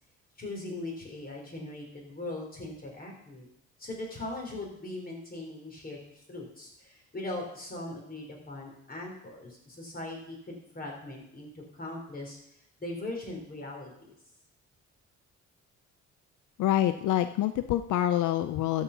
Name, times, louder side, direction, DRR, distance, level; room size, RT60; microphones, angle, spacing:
voice 1, 0.4-3.5 3.8-12.4 12.8-14.1, left 2 dB, 30° left, 0 dB, 4.0 m, -40 dB
voice 2, 16.6-18.8, left 12 dB, 80° left, 11 dB, 0.6 m, -26 dB
13.5 x 5.8 x 5.9 m, 0.74 s
cardioid pair, 90°, 30 cm